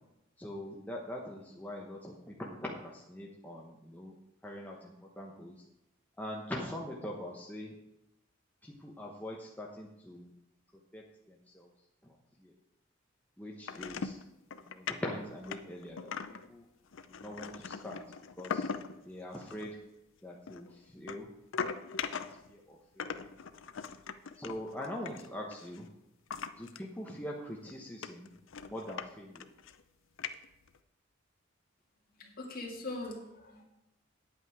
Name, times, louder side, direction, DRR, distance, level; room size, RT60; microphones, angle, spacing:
voice 1, 0.4-4.1 4.4-5.6 6.2-7.8 8.6-10.3 10.9-11.7 12.0-12.5 13.4-14.2 14.6-16.1 16.5-16.6 17.1-18.0 18.4-18.7 19.0-19.8 20.2-21.3 21.7-22.1 22.5-23.2 24.4-25.9 26.6-28.3 28.7-29.5, left 1 dB, 10° left, -2 dB, 1.0 m, -43 dB
sound 1, 13.7-14.2 14.5-15.0 15.4-16.5 16.9-19.0 19.3-19.7 20.5-22.5 23.0-25.8 26.3-26.8 27.1-27.2 27.6-27.7 28.0-29.1 29.3-29.8 30.2-30.8, left 6 dB, 65° left, 0.6 m, -40 dB
voice 2, 32.2-33.6, left 2 dB, 45° left, 0 dB, 2.2 m, -41 dB
9.6 x 8.5 x 4.8 m, 0.89 s
head